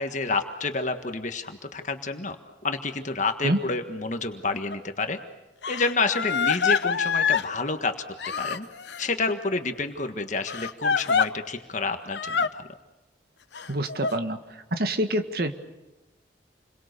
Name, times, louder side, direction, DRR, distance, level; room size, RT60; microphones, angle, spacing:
voice 1, 0.0-2.4 2.6-5.2 5.7-7.9 8.4-8.7 9.0-12.6, left 3 dB, 45° left, 6 dB, 1.6 m, -29 dB
Crying sobbing, 4.7-4.8 5.6-7.5 8.2-9.1 10.5-11.3 12.1-12.5 13.5-14.1, left 6 dB, 75° left, 0.9 m, -25 dB
voice 2, 13.7-14.4 14.7-15.5, right 1 dB, 55° right, 7 dB, 1.8 m, -26 dB
29.0 x 22.5 x 6.8 m, 1.1 s
head